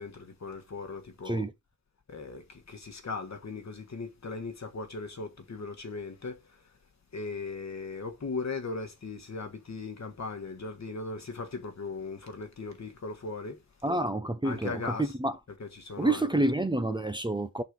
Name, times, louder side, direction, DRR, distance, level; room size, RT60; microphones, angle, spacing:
voice 1, 0.0-1.4 2.1-6.4 7.1-13.6 14.4-15.1 15.6-16.5, left 3 dB, 60° left, 1.3 m, -38 dB
voice 2, 13.8-15.3 16.0-17.6, right 2 dB, 15° right, 0.6 m, -28 dB
5.5 x 4.1 x 4.7 m
wide cardioid pair, 100°, 31 cm